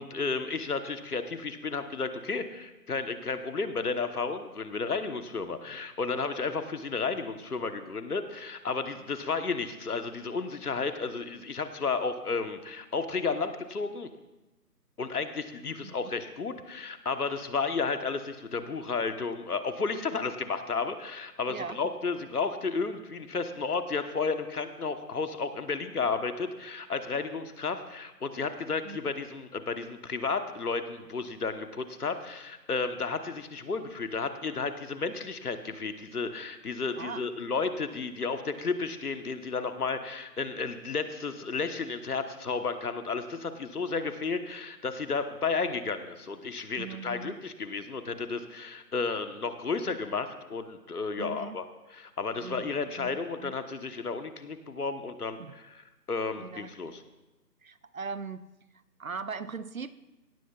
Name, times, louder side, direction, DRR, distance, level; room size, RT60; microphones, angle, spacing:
voice 1, 0.0-14.1 15.0-51.6 51.9-57.0, left 4 dB, 65° left, 9 dB, 1.2 m, -32 dB
voice 2, 15.8-16.1 21.5-21.8 28.9-29.0 37.0-37.3 46.8-47.4 51.2-51.6 52.4-53.6 55.4-55.5 56.4-57.0 57.6-58.5 59.0-59.9, right 5 dB, 55° right, 15 dB, 0.5 m, -40 dB
17.0 x 12.5 x 2.4 m, 1.0 s
figure-of-eight pair, 170°, 49 cm